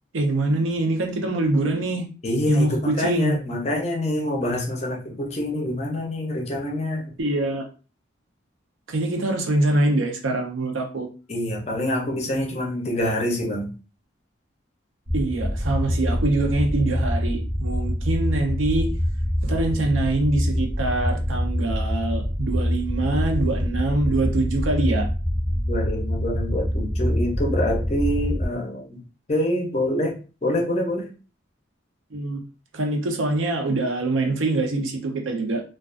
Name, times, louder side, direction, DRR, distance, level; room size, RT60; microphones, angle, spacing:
voice 1, 0.1-2.1 2.5-3.4 7.2-7.6 8.9-11.1 15.1-18.9 19.4-25.1 32.1-32.4 32.7-35.6, right 2 dB, 80° right, 3 dB, 0.5 m, -24 dB
voice 2, 2.2-7.0 11.3-13.7 25.7-29.0 29.3-30.1 30.4-31.0, left 1 dB, 35° left, 0 dB, 0.5 m, -26 dB
sound 1, 15.1-28.5, equal, 25° right, 0.6 m, -25 dB
2.3 x 2.2 x 2.4 m, 0.36 s
head